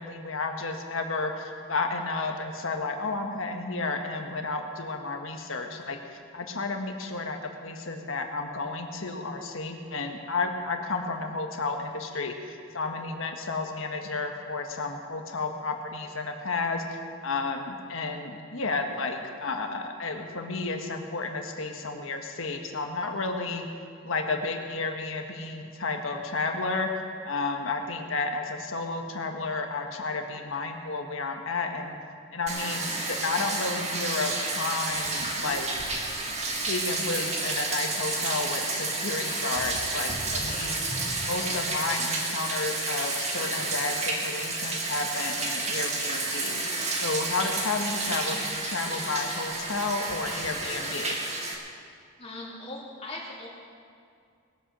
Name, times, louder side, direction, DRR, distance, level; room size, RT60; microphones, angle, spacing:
voice 1, 0.0-6.0 6.3-23.7 24.0-26.9 27.2-31.9 32.3-35.7 36.7-40.8 41.2-46.6 47.0-51.2, left 3 dB, 70° left, 4 dB, 1.5 m, -32 dB
Bathtub (filling or washing), 32.5-51.6, right 3 dB, 30° right, 1.7 m, -30 dB
voice 2, 52.2-53.5, left 2 dB, 30° left, -3 dB, 2.6 m, -39 dB
21.0 x 8.5 x 6.2 m, 2.3 s
head